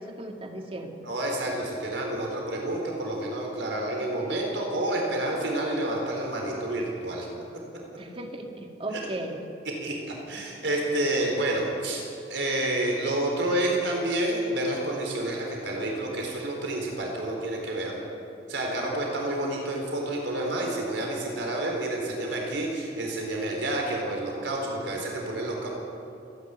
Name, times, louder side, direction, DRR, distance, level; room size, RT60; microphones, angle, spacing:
voice 1, 0.0-1.0 8.0-9.4, right 1 dB, 30° right, 3 dB, 2.1 m, -36 dB
voice 2, 1.0-7.3 8.9-9.0 9.8-9.9 10.3-12.0 12.3-18.0 18.5-25.7, right 1 dB, 90° right, 0 dB, 4.1 m, -29 dB
27.0 x 10.5 x 9.8 m, 2.7 s
head